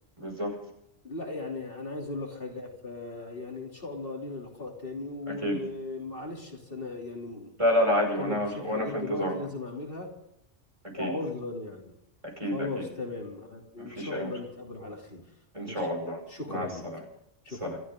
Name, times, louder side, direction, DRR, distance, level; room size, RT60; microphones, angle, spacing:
voice 1, 0.2-0.5 5.3-5.6 7.6-9.4 10.9-11.1 12.2-12.8 13.8-14.3 15.5-16.2 16.5-16.7 17.6-17.8, equal, 25° right, 1 dB, 5.6 m, -29 dB
voice 2, 1.0-7.5 8.2-10.1 11.0-11.9 12.4-15.2 15.7-15.9 16.3-16.8 17.5-17.8, left 2 dB, 50° left, 0 dB, 3.4 m, -37 dB
27.0 x 14.0 x 3.8 m, 0.80 s
omnidirectional pair, 1.2 m